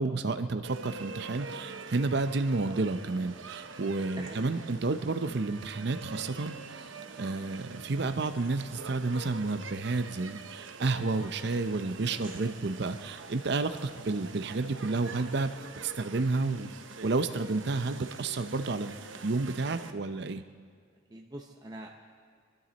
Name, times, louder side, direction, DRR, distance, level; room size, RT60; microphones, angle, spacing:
voice 1, 0.0-6.9 7.2-15.5 15.8-16.7 17.0-19.0 19.2-20.4, right 3 dB, 60° right, 9 dB, 0.6 m, -31 dB
sound 1, 0.6-19.9, right 4 dB, 85° right, 0.9 m, -45 dB
voice 2, 4.2-4.5 11.9-12.3 21.1-21.9, right 1 dB, 20° right, 0 dB, 0.8 m, -44 dB
25.5 x 12.0 x 4.1 m, 2.1 s
head